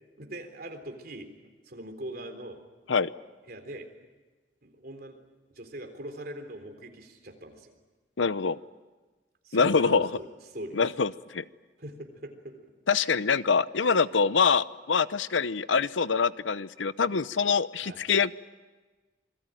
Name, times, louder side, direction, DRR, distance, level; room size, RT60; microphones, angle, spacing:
voice 1, 0.2-1.3 1.6-2.6 3.5-3.9 4.6-5.2 5.5-7.7 9.4-10.8 11.8-12.7 17.8-18.0, right 1 dB, 50° right, 5 dB, 3.7 m, -41 dB
voice 2, 8.2-8.6 9.5-10.1 10.8-11.4 12.9-18.3, left 5 dB, 85° left, 16 dB, 0.8 m, -25 dB
27.5 x 21.5 x 9.1 m, 1.3 s
head